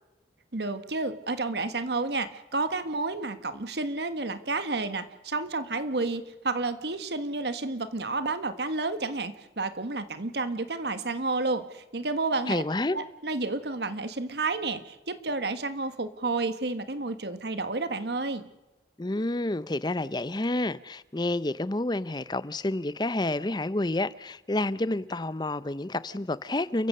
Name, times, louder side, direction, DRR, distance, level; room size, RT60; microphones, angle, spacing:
voice 1, 0.5-12.6 12.9-18.5, right 3 dB, 70° right, 1.4 m, -31 dB
voice 2, 12.5-13.0 19.0-26.9, left 2 dB, 25° left, 0.6 m, -29 dB
29.5 x 15.0 x 6.7 m
head